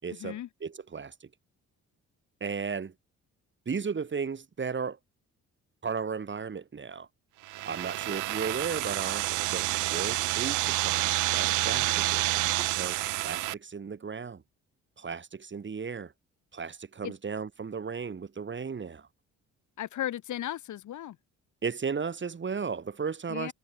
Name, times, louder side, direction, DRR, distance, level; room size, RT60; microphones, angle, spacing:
voice 1, 0.0-1.3 2.4-2.9 3.7-5.0 5.8-7.1 7.7-14.4 15.0-16.1 16.5-19.1 21.6-23.5, right 5 dB, 40° right, 6.4 m, -35 dB
sound 1, 7.4-13.5, right 18 dB, 90° right, 0.9 m, -29 dB
voice 2, 19.8-21.2 23.3-23.5, left 12 dB, 75° left, 4.9 m, -35 dB
cardioid pair, 90°, 30 cm